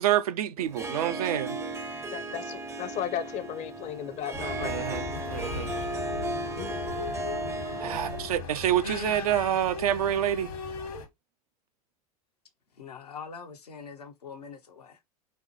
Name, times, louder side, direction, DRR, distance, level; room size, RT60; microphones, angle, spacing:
voice 1, 0.0-1.6 4.6-5.7 7.8-10.5, right 11 dB, 70° right, 0.4 m, -27 dB
Harp, 0.6-8.5, right 2 dB, 15° right, 0.5 m, -35 dB
voice 2, 2.1-5.0 6.1-7.6, left 10 dB, 35° left, 0.5 m, -37 dB
sound 1, 4.3-11.1, left 4 dB, 70° left, 1.1 m, -37 dB
voice 3, 8.8-9.4 12.8-15.0, left 5 dB, 85° left, 0.7 m, -42 dB
4.2 x 2.1 x 2.8 m
figure-of-eight pair, 80°, 20 cm